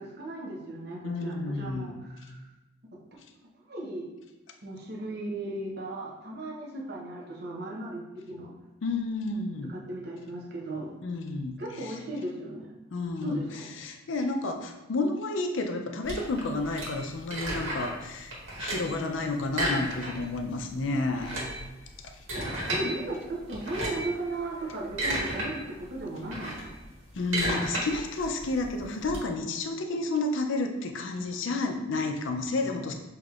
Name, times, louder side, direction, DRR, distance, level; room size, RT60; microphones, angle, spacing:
voice 1, 0.0-1.9 2.2-2.4 2.9-3.0 3.7-4.1 4.6-8.5 9.7-10.9 11.6-12.7 13.2-13.7 22.3-26.7, right 2 dB, 50° right, -2 dB, 0.8 m, -36 dB
voice 2, 1.0-1.9 3.2-3.3 8.8-9.7 11.0-12.0 12.9-21.3 22.0-22.3 27.1-32.9, left 2 dB, 70° left, 5 dB, 0.5 m, -31 dB
sound 1, 16.0-18.0 18.3-19.0 19.5-20.4 20.6-20.7 21.1-22.9 23.5-24.1 24.7-25.5 25.8-29.2, right 1 dB, 90° right, 1.5 m, -32 dB
6.5 x 2.9 x 2.4 m, 1.1 s
head